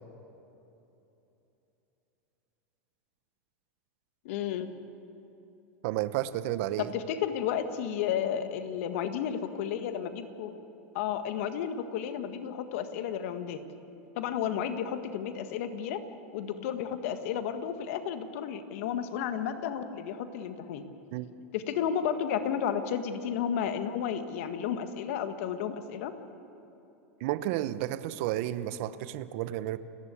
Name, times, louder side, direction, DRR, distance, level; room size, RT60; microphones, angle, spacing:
voice 1, 4.3-4.7 6.8-10.5 10.9-13.6 14.2-16.0 16.3-20.9 21.5-26.1, left 8 dB, 65° left, 8 dB, 1.7 m, -32 dB
voice 2, 5.8-6.9 21.1-21.3 27.2-29.8, right 14 dB, 60° right, 14 dB, 0.9 m, -32 dB
29.0 x 11.0 x 8.4 m, 2.9 s
hypercardioid pair, 105°, 8 cm